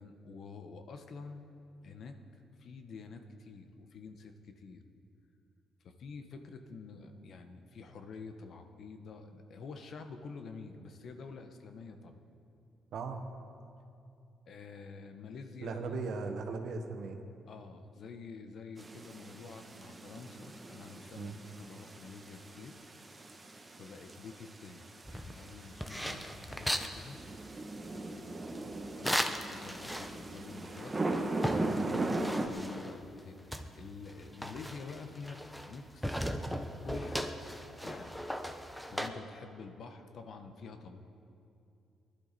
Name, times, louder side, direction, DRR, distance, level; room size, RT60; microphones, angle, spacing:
voice 1, 0.0-1.5 1.8-2.2 2.6-4.8 5.8-12.2 14.5-15.8 17.5-22.9 23.8-27.2 28.1-31.1 32.1-35.4 35.7-36.3 36.8-37.3 37.8-38.3 38.9-41.0, left 4 dB, 60° left, 6 dB, 1.2 m, -48 dB
voice 2, 12.9-13.3 15.6-17.2 21.2-21.4 31.6-31.9, right 4 dB, 70° right, 5 dB, 1.4 m, -38 dB
sound 1, 18.8-32.5, right 2 dB, 20° right, 1.4 m, -39 dB
sound 2, 25.1-27.0 29.0-30.4 30.8-30.9 31.1-33.0 33.5-35.8 36.0-39.1, equal, ahead, 0.9 m, -37 dB
20.0 x 12.0 x 4.2 m, 2.6 s
cardioid pair, 90°, 0 cm